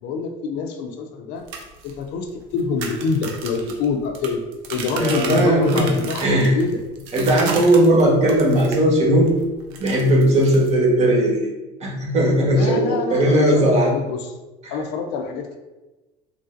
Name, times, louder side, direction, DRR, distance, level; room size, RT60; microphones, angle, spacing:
voice 1, 0.0-1.4 1.8-4.4 4.7-6.8 12.5-14.3 14.7-15.6, left 4 dB, 70° left, 4 dB, 0.5 m, -26 dB
sound 1, 1.4-8.9 9.2-10.8, right 5 dB, 75° right, 0.6 m, -34 dB
voice 2, 4.9-5.9 6.2-6.5 7.1-9.3 9.8-11.4 11.8-13.9 14.6-14.7, right 1 dB, 35° right, -2 dB, 1.0 m, -17 dB
3.2 x 2.5 x 2.5 m, 1.1 s
supercardioid pair, 110°, 18 cm